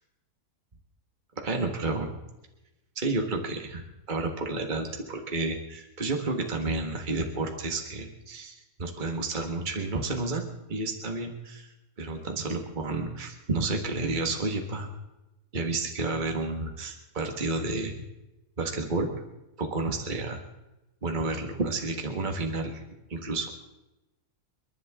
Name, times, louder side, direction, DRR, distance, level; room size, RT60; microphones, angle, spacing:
voice 1, 1.4-2.1 2.9-10.4 10.7-11.7 12.0-14.9 15.5-17.9 18.6-19.1 19.6-20.4 21.0-22.8 23.1-23.5, right 3 dB, 30° right, 3 dB, 1.8 m, -31 dB
29.5 x 11.5 x 3.7 m, 0.97 s
omnidirectional pair, 1.7 m